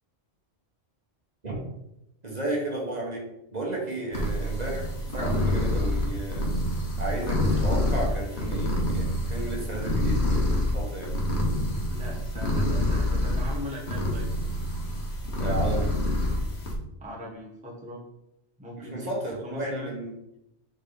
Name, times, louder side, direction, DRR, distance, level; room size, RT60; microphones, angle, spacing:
voice 1, 2.2-3.3 3.5-6.5 7.0-11.1 15.4-15.9 18.8-20.1, right 2 dB, 40° right, -2 dB, 1.4 m, -33 dB
sound 1, 4.1-16.8, left 1 dB, 75° left, 1.6 m, -27 dB
voice 2, 11.9-14.3 17.0-18.0 18.6-19.1 19.4-19.9, left 1 dB, 5° right, -2 dB, 1.0 m, -39 dB
6.8 x 3.7 x 3.9 m, 0.84 s
omnidirectional pair, 1.2 m